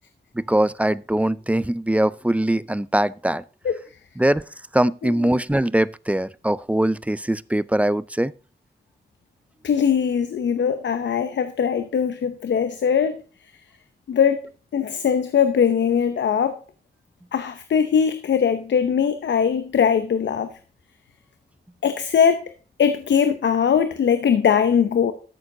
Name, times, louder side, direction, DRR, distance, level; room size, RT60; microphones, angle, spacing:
voice 1, 0.3-3.4 4.2-4.4 4.7-8.3, right 1 dB, 5° right, 0.5 m, -22 dB
voice 2, 9.6-13.2 14.1-14.4 14.7-16.5 17.3-20.5 21.8-22.4 22.8-25.1, left 7 dB, 85° left, 0.8 m, -20 dB
13.0 x 7.0 x 3.9 m
cardioid pair, 55°, 18 cm